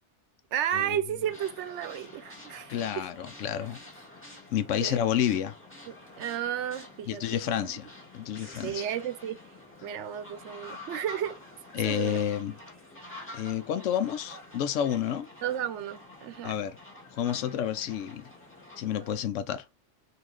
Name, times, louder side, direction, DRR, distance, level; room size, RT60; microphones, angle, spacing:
voice 1, 0.5-3.1 4.8-5.0 5.9-7.7 8.6-9.4 9.8-11.4 11.8-12.2 15.4-16.5, right 10 dB, 75° right, 0.8 m, -33 dB
sound 1, 1.2-19.3, left 1 dB, 10° left, 1.3 m, -48 dB
voice 2, 2.7-3.8 4.5-5.5 7.1-7.9 8.1-8.8 11.7-12.6 13.3-15.3 16.4-16.8 17.1-18.3 18.8-19.6, left 10 dB, 85° left, 0.9 m, -30 dB
3.8 x 2.7 x 3.1 m
omnidirectional pair, 1.2 m